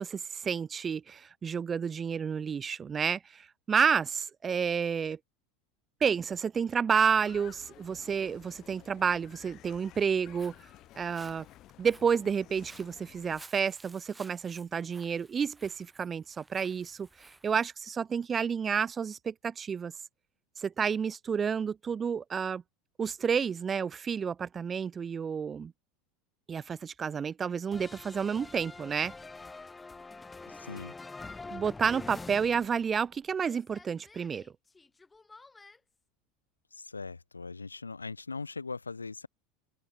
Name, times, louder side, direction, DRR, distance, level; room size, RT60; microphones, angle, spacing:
voice 1, 0.0-5.2 6.0-10.5 11.0-11.5 11.8-17.1 17.4-19.9 20.6-22.6 23.0-25.7 26.5-29.1 31.5-34.4, right 6 dB, 25° right, 0.8 m, -30 dB
sound 1, 6.9-13.4, left 15 dB, 45° left, 1.9 m, -54 dB
Walk footsteps, 10.1-17.7, right 2 dB, 10° right, 1.9 m, -57 dB
sound 2, 27.7-33.2 33.4-35.8, left 3 dB, 15° left, 4.7 m, -46 dB
voice 2, 30.5-30.9 36.7-39.3, left 4 dB, 85° left, 1.8 m, -40 dB
open air
figure-of-eight pair, 80°, 0 cm